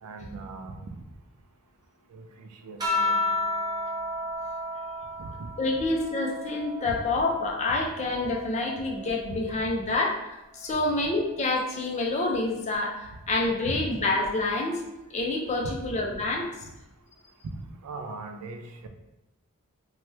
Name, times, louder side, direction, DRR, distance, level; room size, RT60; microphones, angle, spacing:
voice 1, 0.0-1.0 2.1-3.2 5.2-5.5 6.9-7.0 9.3-9.4 13.6-13.9 15.6-15.8 16.6-16.7 17.4-18.9, right 3 dB, 85° right, 6 dB, 0.4 m, -39 dB
sound 1, 2.8-7.6 8.1-9.8 11.0-11.5, left 2 dB, 20° right, 0.7 m, -33 dB
voice 2, 5.6-14.8 15.1-16.5, left 2 dB, 30° left, 0 dB, 0.5 m, -27 dB
2.9 x 2.2 x 3.2 m, 0.94 s
head